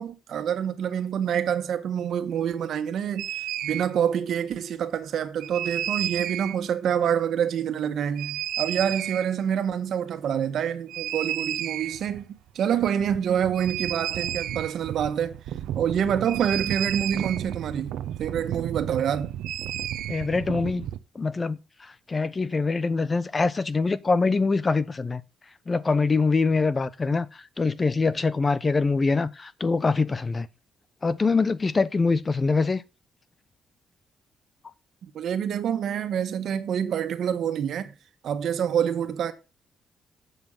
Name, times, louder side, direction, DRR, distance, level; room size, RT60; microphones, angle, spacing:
voice 1, 0.0-3.3 3.6-15.4 15.7-19.3 35.0-37.9 38.2-39.3, right 8 dB, 70° right, 1.6 m, -27 dB
sound 1, 3.2-3.8 5.4-6.6 8.1-9.3 10.9-12.2 12.5-12.6 12.7-21.0, right 11 dB, 90° right, 0.8 m, -32 dB
voice 2, 20.1-20.9 21.1-21.6 22.1-25.2 25.7-27.3 27.6-30.5 31.0-32.8, left 4 dB, 30° left, 0.9 m, -24 dB
8.2 x 6.9 x 5.6 m
cardioid pair, 95°, 0 cm